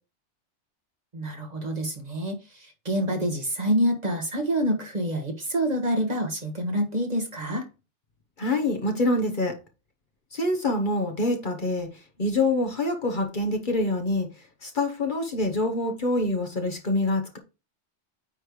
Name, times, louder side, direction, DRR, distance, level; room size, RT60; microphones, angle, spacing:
voice 1, 1.1-7.7, equal, 35° right, 1.5 m, -27 dB
voice 2, 8.4-9.6 10.3-11.9 12.2-14.3 14.6-17.4, left 2 dB, 45° left, 1.2 m, -25 dB
9.2 x 3.3 x 4.7 m
omnidirectional pair, 1.2 m